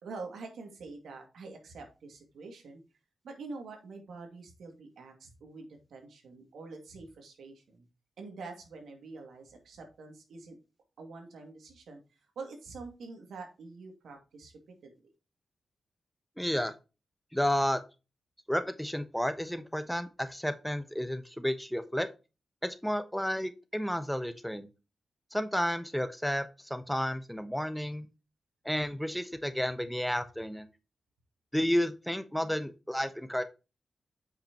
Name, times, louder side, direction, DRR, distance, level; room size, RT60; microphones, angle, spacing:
voice 1, 0.0-2.8 3.2-7.8 8.2-10.6 11.0-12.0 12.4-14.5 14.8-15.1, right 3 dB, 85° right, 4 dB, 2.3 m, -46 dB
voice 2, 16.4-16.7 17.3-17.8 18.5-22.1 22.6-24.7 25.3-28.1 28.6-30.7 31.5-33.4, equal, 5° left, 10 dB, 1.0 m, -31 dB
8.5 x 5.9 x 2.9 m, 0.29 s
cardioid pair, 65°, 0 cm